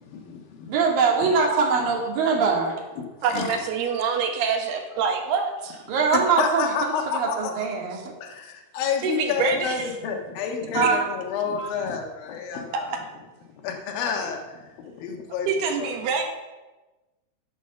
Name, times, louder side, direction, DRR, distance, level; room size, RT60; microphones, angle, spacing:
voice 1, 0.1-0.7 1.2-1.3 2.3-2.4 3.0-3.6 6.1-7.7 8.2-12.9 13.6-15.5 15.8-16.2, left 6 dB, 70° left, 2 dB, 3.2 m, -30 dB
voice 2, 0.7-2.7 5.9-6.7 7.1-8.0 10.7-11.0, right 5 dB, 65° right, -1 dB, 4.0 m, -22 dB
voice 3, 3.2-5.8 9.0-9.7 10.8-10.9 11.6-11.7 12.9-13.0 15.5-16.2, right 6 dB, 85° right, 3 dB, 3.6 m, -26 dB
14.5 x 7.5 x 6.8 m, 1.2 s
omnidirectional pair, 4.5 m